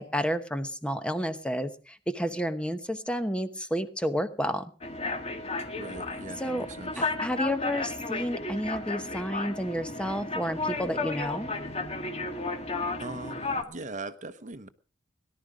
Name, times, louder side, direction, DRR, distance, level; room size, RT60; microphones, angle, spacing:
voice 1, 0.0-4.7 6.4-6.7 7.0-11.5, equal, 5° left, 10 dB, 1.0 m, -31 dB
sound 1, 4.8-13.6, left 3 dB, 35° left, 1.8 m, -33 dB
voice 2, 5.8-7.1 13.0-14.7, right 3 dB, 40° right, 12 dB, 1.0 m, -40 dB
18.0 x 11.5 x 5.0 m, 0.37 s
head